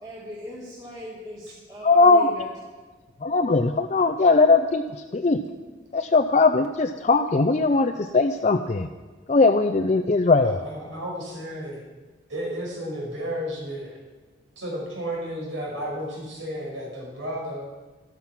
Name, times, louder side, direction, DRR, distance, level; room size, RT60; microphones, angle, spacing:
voice 1, 0.0-2.5, left 1 dB, 20° right, -6 dB, 2.3 m, -39 dB
voice 2, 1.8-2.3 3.2-5.4 5.9-8.9 9.3-10.6, left 3 dB, 35° left, 5 dB, 0.5 m, -20 dB
voice 3, 10.4-11.8 12.3-14.0 14.6-17.7, equal, 85° right, -2 dB, 5.2 m, -33 dB
13.0 x 12.5 x 6.0 m, 1.3 s
head